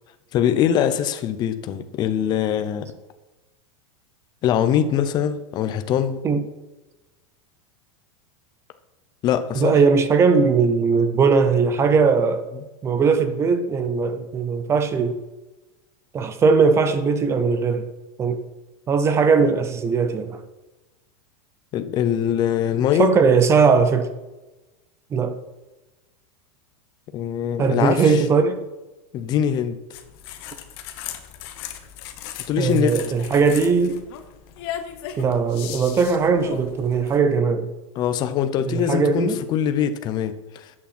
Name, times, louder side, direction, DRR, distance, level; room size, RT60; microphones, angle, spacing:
voice 1, 0.3-2.9 4.4-6.2 9.2-9.8 21.7-23.1 27.1-28.2 29.1-29.8 32.5-33.0 38.0-40.7, left 9 dB, 25° left, 0.7 m, -22 dB
voice 2, 9.5-12.4 12.8-15.2 16.1-17.9 18.2-18.4 18.9-20.4 22.9-24.1 25.1-25.4 27.6-28.6 32.6-34.0 35.2-37.7 38.6-39.4, right 5 dB, 15° right, 0.6 m, -19 dB
sound 1, 29.9-37.2, left 10 dB, 45° left, 1.2 m, -37 dB
13.0 x 8.6 x 4.3 m
supercardioid pair, 170°, 17 cm